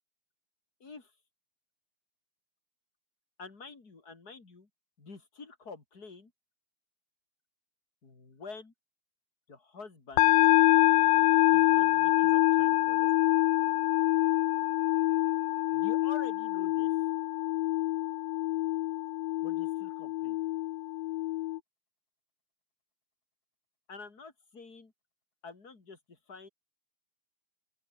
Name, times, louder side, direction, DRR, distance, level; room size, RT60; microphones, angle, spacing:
voice 1, 0.8-1.1 3.4-4.7 5.0-6.3 8.0-8.7 9.5-10.3 11.5-13.1 15.7-16.9 19.4-20.4 23.9-24.9 25.4-26.5, left 4 dB, 25° left, 3.8 m, -48 dB
sound 1, 10.2-21.6, left 18 dB, 75° left, 2.4 m, -26 dB
open air
omnidirectional pair, 4.4 m